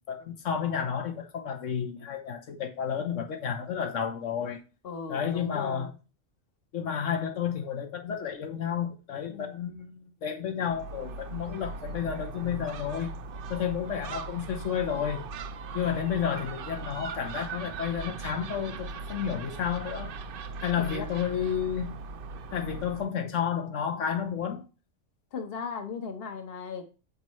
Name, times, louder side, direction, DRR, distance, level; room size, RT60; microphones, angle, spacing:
voice 1, 0.1-4.6 5.1-5.9 6.7-9.9 10.2-13.1 13.5-15.2 15.7-20.1 20.6-22.0 22.5-24.6, left 8 dB, 80° left, 1.2 m, -31 dB
voice 2, 4.8-5.9 9.3-9.6 20.8-21.1 25.3-26.8, left 5 dB, 55° left, 1.1 m, -37 dB
Gull seagull, 10.7-23.1, right 4 dB, 60° right, 0.6 m, -39 dB
7.9 x 5.4 x 3.1 m
omnidirectional pair, 1.3 m